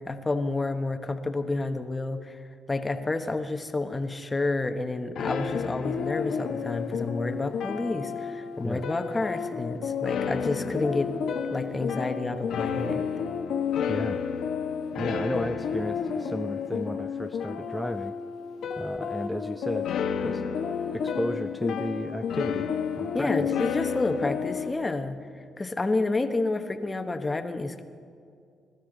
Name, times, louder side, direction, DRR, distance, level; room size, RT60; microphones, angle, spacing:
voice 1, 0.0-2.4 2.7-11.1 11.5-13.0 23.1-25.2 25.6-27.8, left 2 dB, 20° left, 8 dB, 1.1 m, -29 dB
sound 1, 5.1-24.7, left 6 dB, 75° left, 1.2 m, -31 dB
voice 2, 13.9-14.2 15.0-18.1 18.8-19.9 20.2-20.4 20.9-22.7 23.0-23.6, equal, ahead, 9 dB, 0.4 m, -33 dB
22.0 x 13.0 x 4.0 m, 2.4 s
cardioid pair, 90°, 0 cm